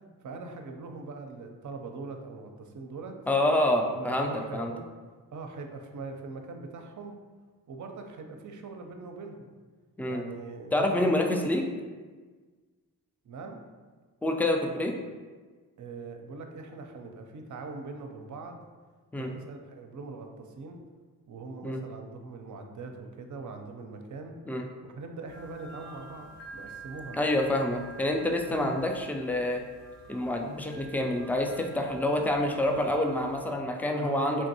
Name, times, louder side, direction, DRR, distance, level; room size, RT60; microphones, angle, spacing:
voice 1, 0.2-3.1 3.9-4.8 5.3-7.2 7.7-9.5 10.0-11.5 13.2-13.6 15.8-18.6 19.1-20.8 21.3-24.4 24.8-27.3 28.5-28.8 34.0-34.5, right 3 dB, 45° right, 4 dB, 0.5 m, -41 dB
voice 2, 3.3-4.7 10.0-10.2 10.7-11.6 14.2-15.0 19.1-19.3 21.6-21.8 24.5-24.7 27.2-29.6 30.1-34.5, left 1 dB, 5° left, 3 dB, 0.3 m, -27 dB
sound 1, 25.3-33.6, right 2 dB, 85° left, 0.7 m, -49 dB
3.5 x 2.5 x 2.7 m, 1.4 s
supercardioid pair, 40°, 41 cm